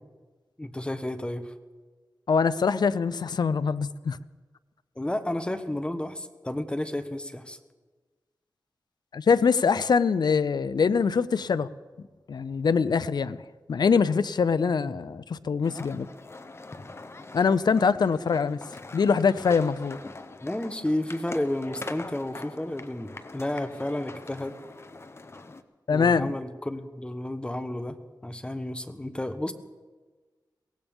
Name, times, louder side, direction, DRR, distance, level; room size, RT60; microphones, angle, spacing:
voice 1, 0.6-1.5 5.0-7.6 14.8-14.9 20.4-24.6 25.9-28.0 28.2-29.5, left 1 dB, 15° left, 1.0 m, -31 dB
voice 2, 2.3-4.2 9.1-11.7 12.3-13.4 13.7-16.1 17.3-18.6 18.9-20.0 25.9-26.4, left 5 dB, 70° left, 0.5 m, -23 dB
sound 1, 15.6-25.6, left 3 dB, 35° left, 0.8 m, -43 dB
23.0 x 17.5 x 3.6 m
wide cardioid pair, 105°, 8 cm